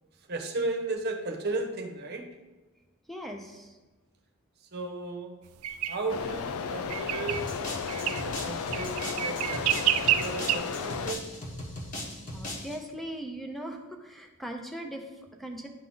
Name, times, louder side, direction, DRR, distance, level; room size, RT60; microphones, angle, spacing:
voice 1, 0.2-2.3 4.6-5.4 5.9-11.3, right 2 dB, 50° right, 3 dB, 0.9 m, -35 dB
voice 2, 3.1-3.8 12.3-15.7, right 1 dB, ahead, 3 dB, 0.7 m, -39 dB
sound 1, 5.6-6.0 6.9-7.4 7.9-8.2 8.7-10.6, right 11 dB, 85° right, 0.4 m, -28 dB
sound 2, 6.1-11.1, left 5 dB, 75° left, 0.4 m, -34 dB
sound 3, 7.3-12.8, left 1 dB, 35° left, 1.3 m, -39 dB
10.5 x 3.7 x 3.8 m, 1.2 s
head